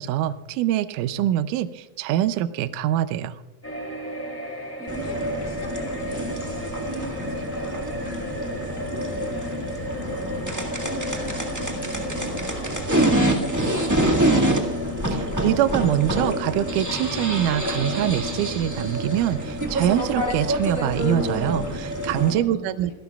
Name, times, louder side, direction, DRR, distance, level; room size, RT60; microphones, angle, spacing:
voice 1, 0.0-3.4 15.1-22.9, right 12 dB, 80° right, 11 dB, 2.0 m, -24 dB
sound 1, 3.6-18.2 18.6-18.7, left 1 dB, 5° left, 2.1 m, -38 dB
voice 2, 4.4-14.6 22.4-22.9, left 1 dB, 35° left, 2 dB, 4.2 m, -43 dB
sound 2, 4.9-22.3, right 1 dB, 15° right, 0.7 m, -26 dB
26.0 x 18.0 x 2.4 m, 1.0 s
omnidirectional pair, 3.9 m